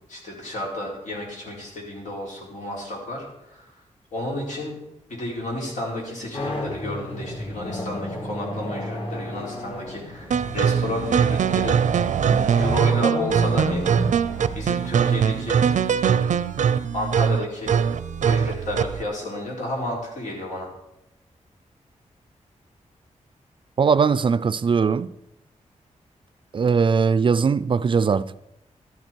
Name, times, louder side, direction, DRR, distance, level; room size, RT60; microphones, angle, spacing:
voice 1, 0.1-3.7 4.1-4.7 5.1-11.8 12.5-13.9 14.5-15.6 16.9-17.7 18.2-20.7, left 1 dB, 85° left, 4.4 m, -32 dB
sound 1, 6.3-15.7, left 1 dB, 50° left, 2.4 m, -33 dB
sound 2, 10.3-19.0, right 7 dB, 90° right, 0.6 m, -21 dB
voice 2, 23.8-25.1 26.5-28.5, right 5 dB, 45° right, 0.4 m, -20 dB
13.0 x 12.0 x 4.6 m
wide cardioid pair, 145°, 12 cm